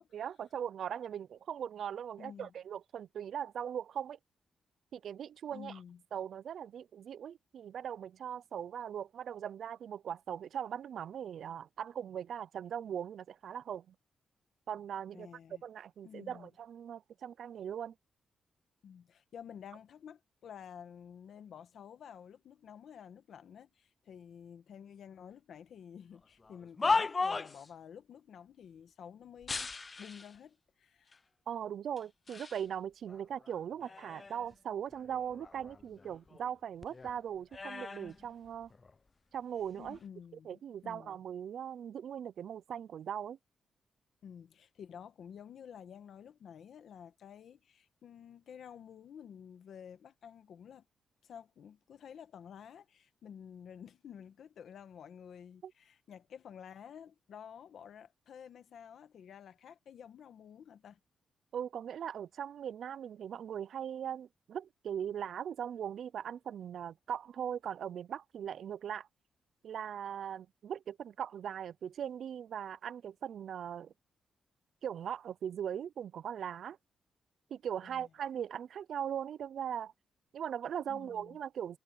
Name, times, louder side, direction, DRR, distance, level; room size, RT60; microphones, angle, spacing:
voice 1, 0.1-4.2 4.9-5.8 6.1-13.9 14.7-15.3 15.6-17.9 31.5-38.7 39.3-40.0 40.4-43.4 55.6-55.7 61.5-69.1 69.6-73.9 74.8-76.8 77.5-79.9 80.3-81.8, right 9 dB, 65° right, 0.3 m, -40 dB
voice 2, 2.2-2.5 5.5-6.0 15.1-15.6 16.0-16.5 18.8-31.2 39.8-41.2 44.2-50.8 51.2-61.0 77.8-78.1 80.9-81.4, left 8 dB, 65° left, 1.2 m, -51 dB
sound 1, 26.4-27.7 29.4-30.4 31.1-31.2 32.0-32.6 33.1-34.5 34.9-36.6 36.8-39.0 39.7-40.0, left 4 dB, 25° left, 0.3 m, -37 dB
wide cardioid pair, 150°, 0 cm